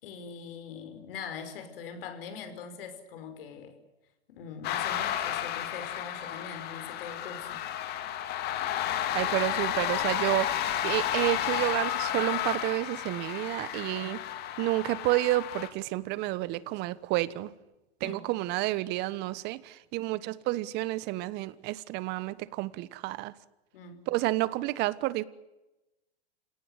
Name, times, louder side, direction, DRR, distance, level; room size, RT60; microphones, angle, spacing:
voice 1, 0.0-3.8 4.3-7.6 18.0-18.3 23.7-24.1, left 6 dB, 60° left, 5.4 m, -42 dB
sound 1, 4.6-15.7, left 11 dB, 30° left, 2.3 m, -32 dB
voice 2, 9.1-14.2 14.6-17.5 18.0-23.3 24.1-25.2, right 18 dB, 30° right, 1.2 m, -30 dB
28.0 x 18.0 x 9.7 m
hypercardioid pair, 135°, 32 cm